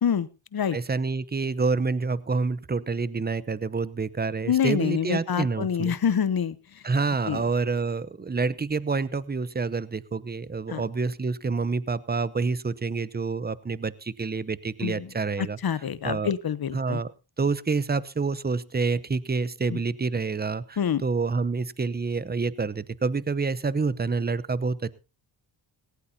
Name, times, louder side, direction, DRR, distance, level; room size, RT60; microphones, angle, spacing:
voice 1, 0.0-0.8 4.5-6.6 7.3-7.4 10.7-10.8 14.8-15.1 15.6-17.0 19.7-19.8 20.8-21.0, left 8 dB, 45° left, 17 dB, 0.9 m, -26 dB
voice 2, 0.7-5.9 6.8-16.3 16.7-17.1 17.4-24.9, right 4 dB, 20° right, 18 dB, 0.8 m, -28 dB
18.0 x 16.5 x 2.8 m, 0.30 s
cardioid pair, 60°, 49 cm